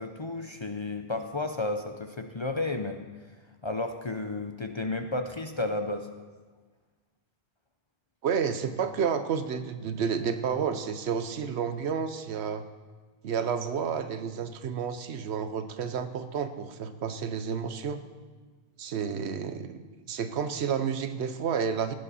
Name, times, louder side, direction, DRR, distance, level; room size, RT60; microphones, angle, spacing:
voice 1, 0.0-3.1 3.6-6.1, left 2 dB, 35° left, 6 dB, 0.5 m, -32 dB
voice 2, 8.2-12.7 13.2-18.0 18.8-19.8 20.1-21.9, right 7 dB, 85° right, 10 dB, 1.0 m, -30 dB
16.0 x 9.7 x 4.2 m, 1.4 s
omnidirectional pair, 1.1 m